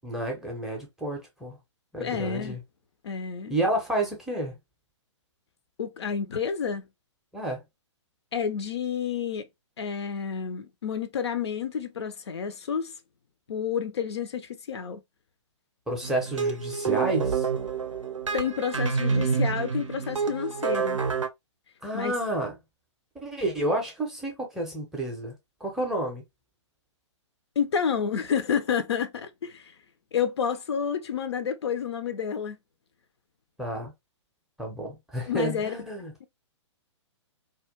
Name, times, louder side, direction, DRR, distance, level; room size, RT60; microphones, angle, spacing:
voice 1, 0.0-1.6 1.9-2.6 3.5-4.6 7.3-7.6 15.9-17.5 21.8-22.6 23.2-25.3 25.6-26.2 33.6-33.9 34.6-36.1, right 1 dB, 5° right, 0.5 m, -30 dB
voice 2, 2.0-2.6 3.0-3.5 5.8-6.9 8.3-9.5 9.8-12.9 13.5-15.0 18.3-21.0 21.9-22.1 27.6-29.7 30.1-32.6 35.3-35.8 36.2-36.3, left 7 dB, 60° left, 0.4 m, -29 dB
sound 1, 16.0-21.3, right 5 dB, 80° right, 0.5 m, -28 dB
2.2 x 2.0 x 2.7 m
figure-of-eight pair, 120°, 16 cm